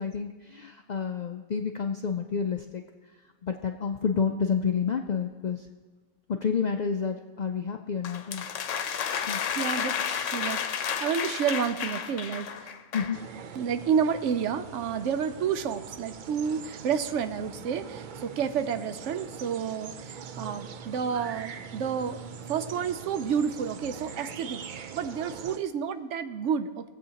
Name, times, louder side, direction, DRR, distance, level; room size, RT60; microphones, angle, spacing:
voice 1, 0.0-2.8 3.4-5.7 6.3-8.5 9.3-9.4 12.9-13.2, left 6 dB, 65° left, 5 dB, 0.4 m, -29 dB
sound 1, 8.0-13.2, left 7 dB, 85° left, 1.0 m, -32 dB
voice 2, 9.6-10.6 11.0-12.7 13.6-22.2 22.5-26.9, right 7 dB, 80° right, 10 dB, 0.9 m, -30 dB
sound 2, 13.1-25.6, right 7 dB, 60° right, 0.5 m, -42 dB
19.5 x 7.7 x 2.8 m, 1.4 s
omnidirectional pair, 1.3 m